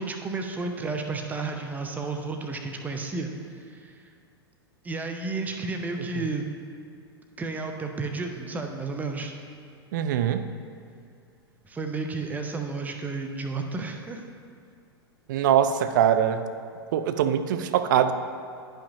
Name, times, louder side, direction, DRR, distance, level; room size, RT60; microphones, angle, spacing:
voice 1, 0.0-4.1 4.8-6.5 7.4-9.3 11.6-14.2, right 3 dB, 10° right, 4 dB, 0.6 m, -32 dB
voice 2, 9.9-10.5 15.3-16.4 16.9-18.1, right 9 dB, 50° right, 10 dB, 0.4 m, -22 dB
11.0 x 5.6 x 2.7 m, 2.4 s
figure-of-eight pair, 95°, 13 cm